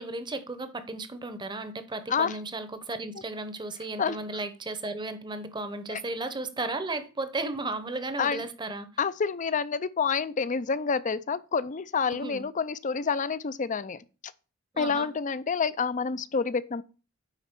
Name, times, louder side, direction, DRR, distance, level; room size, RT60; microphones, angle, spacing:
voice 1, 0.0-8.9 12.1-12.4 14.7-15.1, right 2 dB, 20° right, 0.9 m, -34 dB
voice 2, 9.0-14.3 14.8-16.8, left 5 dB, 35° left, 0.4 m, -28 dB
9.9 x 4.2 x 6.0 m
head